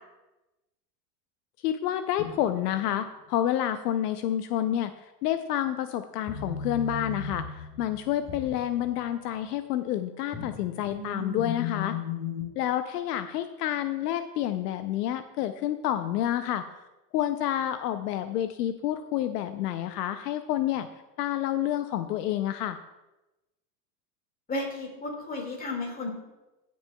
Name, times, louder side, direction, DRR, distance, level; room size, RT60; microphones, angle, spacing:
voice 1, 1.6-12.0 12.6-16.6 17.1-20.9 21.2-22.8, left 11 dB, 70° left, 10 dB, 0.6 m, -29 dB
sound 1, 2.2-2.8 6.3-9.4 9.8-12.5, left 6 dB, 35° left, 3.0 m, -36 dB
voice 2, 24.5-26.1, left 2 dB, 15° left, 1 dB, 2.0 m, -33 dB
15.0 x 6.1 x 2.3 m, 1.0 s
supercardioid pair, 130°, 49 cm